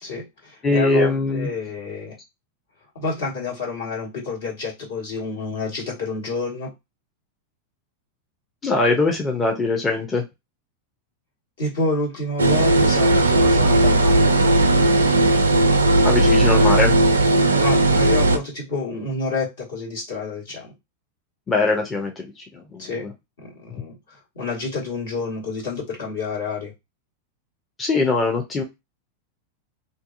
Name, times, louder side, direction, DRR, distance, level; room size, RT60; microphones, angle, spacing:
voice 1, 0.0-2.1 2.9-6.7 11.6-14.2 17.5-20.7 22.8-23.0 23.4-24.0 24.3-26.7, left 3 dB, 60° left, 1.4 m, -28 dB
voice 2, 0.6-1.5 8.6-10.3 16.0-16.9 21.5-22.9 27.8-28.6, left 3 dB, 20° left, 0.6 m, -21 dB
sound 1, 12.4-18.4, right 2 dB, 75° right, 0.4 m, -16 dB
2.6 x 2.3 x 2.5 m
figure-of-eight pair, 90°, 0 cm